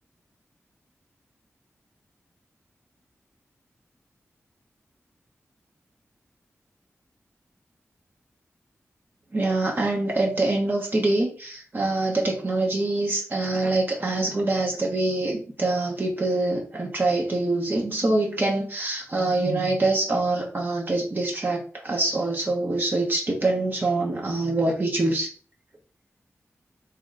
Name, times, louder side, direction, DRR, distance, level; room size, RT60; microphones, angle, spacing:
voice 1, 9.3-25.3, right 2 dB, 40° right, 0 dB, 0.9 m, -25 dB
3.0 x 3.0 x 3.7 m, 0.39 s
wide cardioid pair, 115°, 5 cm